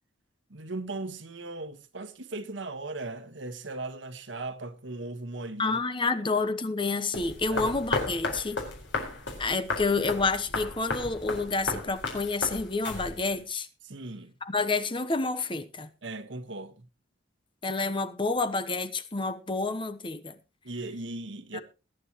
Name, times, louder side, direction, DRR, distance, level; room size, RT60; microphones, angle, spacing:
voice 1, 0.5-5.8 6.2-6.3 7.5-7.7 13.8-14.3 16.0-16.9 20.6-21.6, right 2 dB, 80° right, 1.4 m, -38 dB
voice 2, 5.6-8.6 9.4-13.7 14.5-15.9 17.6-20.3 21.5-21.6, left 3 dB, 30° left, 0.9 m, -29 dB
sound 1, 7.1-13.4, left 2 dB, 80° left, 4.6 m, -34 dB
21.5 x 10.0 x 3.0 m
head